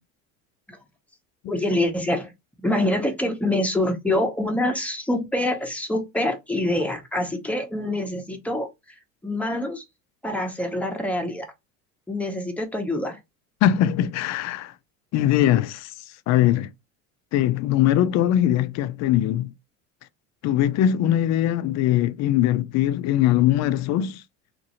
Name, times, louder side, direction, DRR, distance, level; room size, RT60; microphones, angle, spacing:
voice 1, 1.5-2.3 2.6-8.7 9.2-9.8 10.2-11.5 12.1-13.2, left 1 dB, 5° left, 0.8 m, -25 dB
voice 2, 13.6-14.7 15.1-15.9 16.3-16.7 17.3-19.5 20.4-24.2, left 12 dB, 50° left, 0.4 m, -21 dB
2.7 x 2.6 x 2.8 m
supercardioid pair, 85°, 36 cm